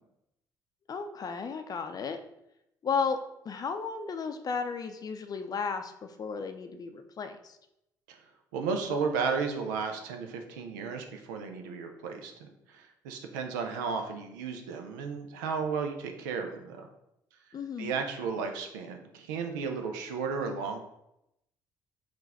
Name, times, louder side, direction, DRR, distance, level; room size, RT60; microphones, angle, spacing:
voice 1, 0.9-2.2 2.8-7.6 17.5-18.0, left 5 dB, 40° left, 7 dB, 0.5 m, -34 dB
voice 2, 8.5-16.9 17.8-20.8, right 5 dB, 75° right, 5 dB, 0.5 m, -34 dB
3.8 x 2.5 x 4.1 m, 0.82 s
hypercardioid pair, 50°, 10 cm